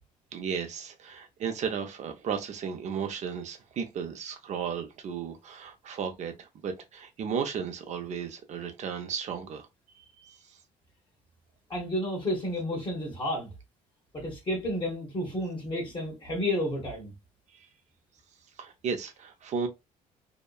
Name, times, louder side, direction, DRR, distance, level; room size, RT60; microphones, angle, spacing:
voice 1, 0.3-9.7 9.9-10.6 17.5-17.7 18.6-19.7, right 6 dB, 50° right, 0.5 m, -34 dB
voice 2, 11.7-13.5 14.1-17.1, left 1 dB, 35° left, 1.0 m, -31 dB
2.7 x 2.1 x 2.2 m
cardioid pair, 105°, 15 cm